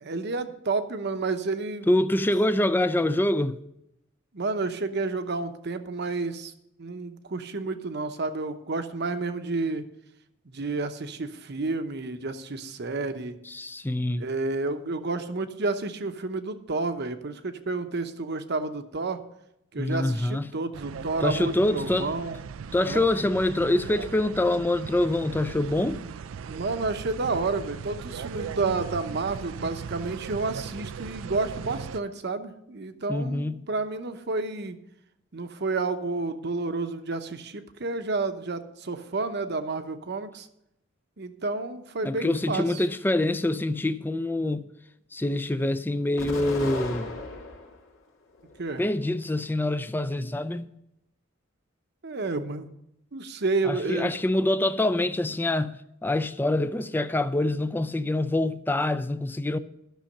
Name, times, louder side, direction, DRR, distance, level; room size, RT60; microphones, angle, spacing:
voice 1, 0.0-1.9 4.3-6.5 6.8-9.9 10.5-13.4 14.2-19.2 19.7-22.4 22.8-23.1 26.5-34.8 35.3-40.5 41.2-42.8 48.6-48.8 52.0-52.7 53.1-54.1, right 3 dB, 55° right, 0.9 m, -30 dB
voice 2, 1.9-3.6 13.5-14.2 19.8-20.5 21.2-22.1 22.7-26.0 33.1-33.6 42.0-44.7 45.1-47.1 48.8-50.7 53.7-55.7 56.0-59.6, left 1 dB, 10° left, 0.4 m, -25 dB
sound 1, 20.7-32.0, right 6 dB, 80° right, 0.4 m, -38 dB
Explosion, 46.2-47.8 48.3-49.2, left 2 dB, 85° left, 2.4 m, -36 dB
11.5 x 6.4 x 6.5 m
head